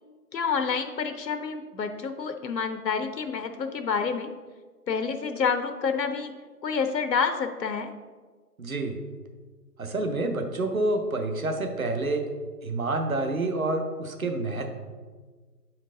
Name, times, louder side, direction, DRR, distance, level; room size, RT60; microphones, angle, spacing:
voice 1, 0.3-4.3 4.9-6.3 6.6-7.9, left 5 dB, 85° left, 8 dB, 0.7 m, -28 dB
voice 2, 8.6-9.0 9.8-12.3 12.6-14.7, right 2 dB, 55° right, 5 dB, 0.8 m, -28 dB
7.3 x 4.5 x 3.7 m, 1.4 s
hypercardioid pair, 175°, 49 cm